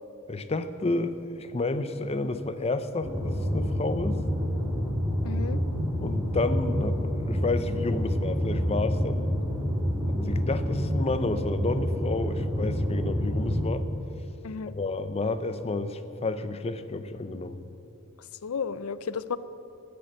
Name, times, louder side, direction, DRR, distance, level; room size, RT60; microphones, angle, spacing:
voice 1, 0.3-4.2 6.0-9.4 10.2-13.9 14.7-17.6, left 2 dB, 30° left, 11 dB, 0.6 m, -30 dB
sound 1, 3.0-13.7, equal, 10° right, 2.5 m, -28 dB
voice 2, 5.2-5.6 14.4-14.7 18.4-19.4, left 6 dB, 80° left, 15 dB, 0.5 m, -33 dB
15.0 x 6.8 x 7.7 m, 2.9 s
head